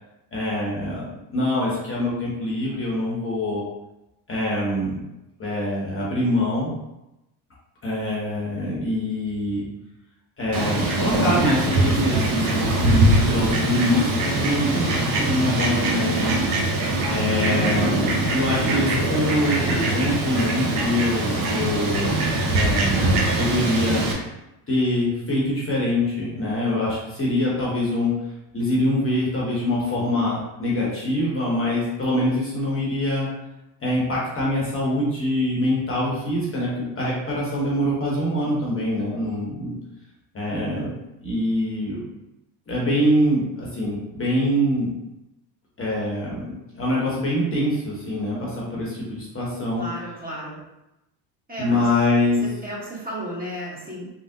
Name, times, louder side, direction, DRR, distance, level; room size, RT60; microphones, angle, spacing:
voice 1, 0.3-3.6 4.3-5.0 5.4-6.7 7.8-9.6 10.4-16.3 17.1-22.2 22.5-24.1 24.7-28.1 28.5-33.3 33.8-39.8 40.3-40.9 41.2-42.0 42.7-44.9 45.8-49.8 51.6-52.4, left 1 dB, 25° left, -5 dB, 0.9 m, -24 dB
Fowl, 10.5-24.1, right 2 dB, 65° right, 0.9 m, -22 dB
voice 2, 49.8-50.6 51.5-51.8 52.4-54.1, equal, 15° right, -6 dB, 1.1 m, -33 dB
3.3 x 2.0 x 2.7 m, 0.92 s
supercardioid pair, 85°, 50 cm